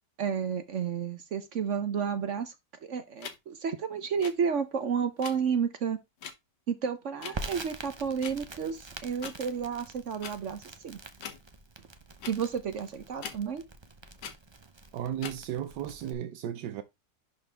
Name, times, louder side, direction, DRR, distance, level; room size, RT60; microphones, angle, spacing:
voice 1, 0.2-2.5 2.8-6.0 6.7-11.0 12.3-13.6, right 6 dB, 55° right, 1.0 m, -31 dB
sound 1, 3.2-3.4 4.2-4.3 5.2-5.4 6.2-6.3 7.2-7.3 8.2-8.4 9.2-9.4 10.2-10.3 11.2-11.4 12.2-12.4 13.2-13.4 14.2-14.3 15.2-15.4, left 7 dB, 75° left, 1.7 m, -40 dB
Crackle, 7.3-16.1, right 3 dB, 35° right, 0.4 m, -45 dB
voice 2, 14.9-16.8, right 10 dB, 80° right, 1.3 m, -35 dB
11.0 x 4.0 x 3.4 m
omnidirectional pair, 1.8 m